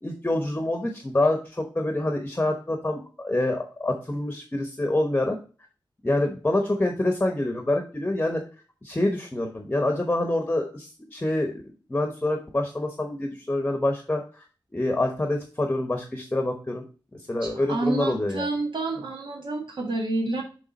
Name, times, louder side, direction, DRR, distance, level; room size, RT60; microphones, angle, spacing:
voice 1, 0.0-5.4 6.0-8.4 8.8-11.6 11.9-14.4 14.7-16.8 17.3-18.5, left 1 dB, 20° left, 4 dB, 0.9 m, -26 dB
voice 2, 17.4-20.4, right 2 dB, 70° right, 0 dB, 1.6 m, -29 dB
7.0 x 3.3 x 5.2 m, 0.36 s
wide cardioid pair, 110°, 8 cm